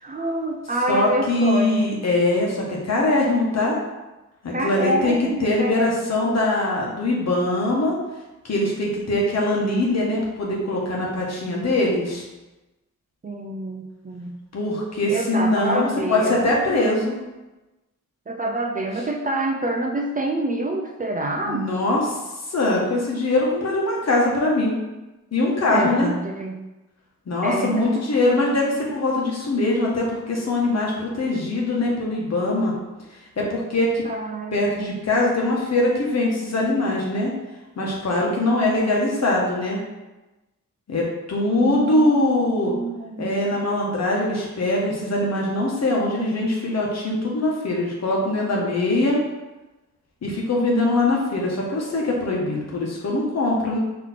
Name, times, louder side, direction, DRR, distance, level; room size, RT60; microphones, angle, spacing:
voice 1, 0.0-1.9 4.5-6.2 13.2-14.4 15.1-17.1 18.3-21.7 25.7-26.6 27.4-28.1 34.0-34.9 41.6-43.4, right 1 dB, 30° right, 1 dB, 0.4 m, -27 dB
voice 2, 0.9-3.7 4.4-8.0 8.4-12.2 14.5-17.1 21.4-22.0 22.5-24.8 25.3-26.1 27.3-32.7 33.4-34.0 34.5-37.3 37.8-39.8 40.9-42.7 43.2-49.2 50.2-53.8, left 2 dB, 55° left, -2 dB, 1.1 m, -22 dB
4.4 x 3.0 x 4.1 m, 1.1 s
wide cardioid pair, 135°, 31 cm